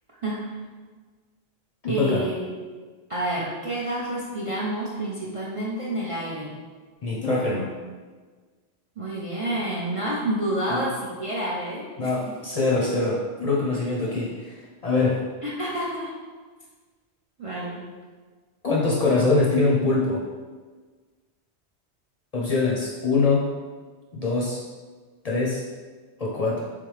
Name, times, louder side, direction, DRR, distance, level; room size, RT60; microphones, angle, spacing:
voice 1, 0.2-0.5 1.9-2.5 3.1-6.5 9.0-12.4 15.4-16.1 17.4-17.8, right 1 dB, 45° right, -5 dB, 0.4 m, -29 dB
voice 2, 1.8-2.2 7.0-7.7 10.7-10.9 12.0-15.2 18.6-20.2 22.3-23.5 24.1-24.6 25.2-25.6 26.2-26.6, left 3 dB, 45° left, -4 dB, 0.5 m, -23 dB
3.6 x 3.4 x 3.1 m, 1.4 s
omnidirectional pair, 1.1 m